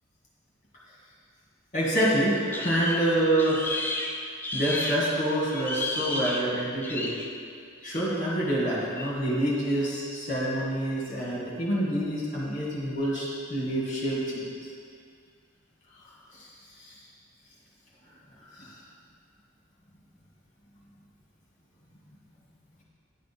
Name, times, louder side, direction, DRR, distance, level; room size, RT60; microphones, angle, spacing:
voice 1, 1.7-3.8 4.5-7.1 7.8-14.4 16.8-16.9 18.5-18.7, right 1 dB, 35° left, -6 dB, 1.7 m, -27 dB
sound 1, 2.0-5.2 5.5-7.4 7.8-8.1 8.9-9.1, left 2 dB, 10° left, 0.3 m, -33 dB
10.5 x 3.7 x 4.2 m, 2.2 s
head